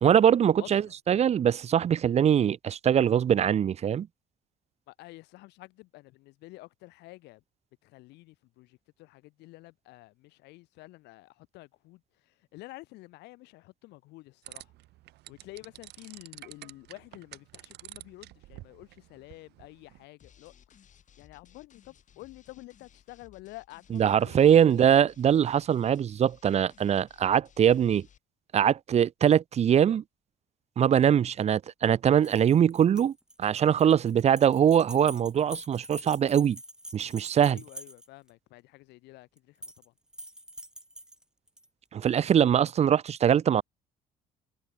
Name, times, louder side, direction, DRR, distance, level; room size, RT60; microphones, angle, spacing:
voice 1, 0.0-4.1 23.9-28.1 28.5-30.0 30.8-33.1 33.4-36.6 36.9-37.6 41.9-43.6, right 9 dB, 40° right, 0.7 m, -22 dB
voice 2, 0.6-0.9 4.9-7.4 7.8-14.7 15.3-20.5 21.2-24.5 24.7-25.1 34.6-34.8 37.5-39.6 39.8-39.9, left 20 dB, 90° left, 2.6 m, -49 dB
sound 1, 14.4-20.0, right 17 dB, 80° right, 1.8 m, -49 dB
sound 2, 20.2-28.2, left 8 dB, 45° left, 5.8 m, -60 dB
sound 3, 32.2-38.3 39.4-39.9 40.1-41.7, right 1 dB, 5° right, 1.7 m, -45 dB
cardioid pair, 110°, 17 cm